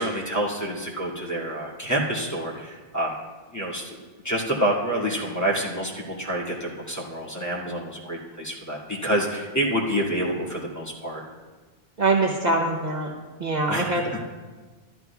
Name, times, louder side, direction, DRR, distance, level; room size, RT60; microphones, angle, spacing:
voice 1, 0.0-3.1 3.5-4.0 4.2-5.9 6.2-11.2 13.7-14.2, right 1 dB, 15° left, -5 dB, 2.1 m, -27 dB
voice 2, 12.0-13.1 13.4-14.2, right 2 dB, 45° right, 0 dB, 0.9 m, -23 dB
14.0 x 12.0 x 2.3 m, 1.3 s
omnidirectional pair, 1.0 m